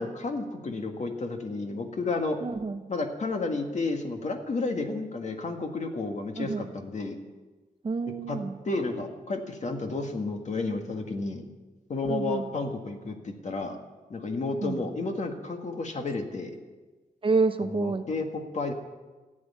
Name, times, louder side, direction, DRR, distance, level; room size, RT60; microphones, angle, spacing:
voice 1, 0.0-2.4 2.9-7.2 8.3-8.4 8.6-11.4 11.9-13.8 14.1-16.5 17.6-18.7, left 3 dB, 55° left, 4 dB, 1.7 m, -31 dB
voice 2, 2.4-2.8 6.4-6.7 7.8-8.5 12.0-12.5 14.6-14.8 17.2-18.1, right 4 dB, 35° right, 9 dB, 0.7 m, -28 dB
14.5 x 7.8 x 9.6 m, 1.2 s
wide cardioid pair, 140°, 15 cm